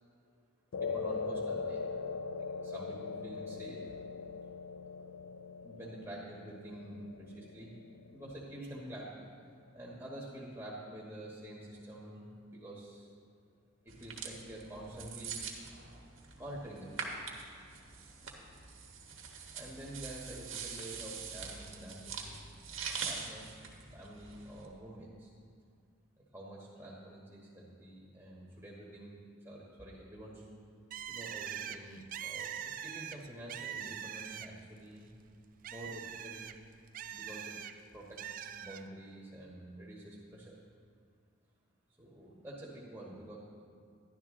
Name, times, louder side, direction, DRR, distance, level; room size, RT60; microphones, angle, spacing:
sound 1, 0.7-9.2, left 4 dB, 90° left, 0.4 m, -41 dB
voice 1, 0.7-2.0 2.3-3.9 5.2-7.7 8.1-9.3 9.7-13.1 13.8-15.4 16.4-17.1 19.5-22.3 23.0-23.6 23.9-25.3 26.3-29.2 29.4-30.5 31.0-35.1 35.7-36.4 37.1-37.5 37.9-40.6 42.0-43.4, right 1 dB, 15° right, -5 dB, 1.4 m, -48 dB
sound 2, 13.9-24.6, right 5 dB, 85° right, 1.4 m, -44 dB
Bird, 30.9-34.7 35.1-37.7 38.2-38.8, right 9 dB, 45° right, 0.4 m, -43 dB
11.5 x 11.5 x 3.7 m, 2.3 s
head